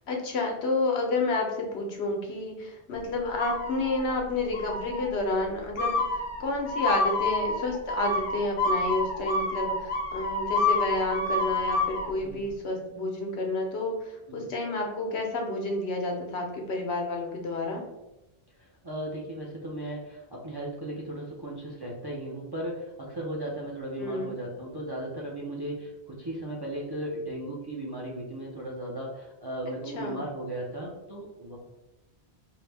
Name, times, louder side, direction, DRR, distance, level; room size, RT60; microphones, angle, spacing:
voice 1, 0.1-17.8 24.0-24.3 29.9-30.2, left 2 dB, 85° left, 1 dB, 1.1 m, -30 dB
sound 1, 3.4-4.1 4.5-5.1 5.8-12.1, left 2 dB, 60° left, 0.8 m, -28 dB
voice 2, 18.6-31.6, right 1 dB, 35° right, -3 dB, 0.4 m, -36 dB
4.6 x 2.0 x 3.3 m, 0.96 s
omnidirectional pair, 1.1 m